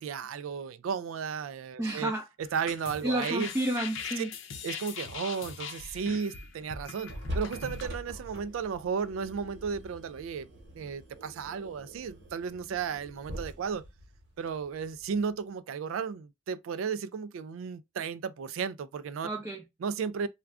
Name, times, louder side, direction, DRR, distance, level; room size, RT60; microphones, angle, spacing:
voice 1, 0.0-3.5 4.2-4.3 4.6-10.5 10.7-13.8 14.4-19.3 19.8-20.3, right 6 dB, 90° right, 0.3 m, -34 dB
voice 2, 1.8-2.3 3.0-4.3 19.2-19.6, right 1 dB, 15° right, 0.4 m, -31 dB
sound 1, 2.4-7.8, left 6 dB, 75° left, 0.5 m, -41 dB
sound 2, 6.0-6.5 6.8-15.3, equal, 60° right, 1.0 m, -44 dB
2.3 x 2.2 x 3.4 m
head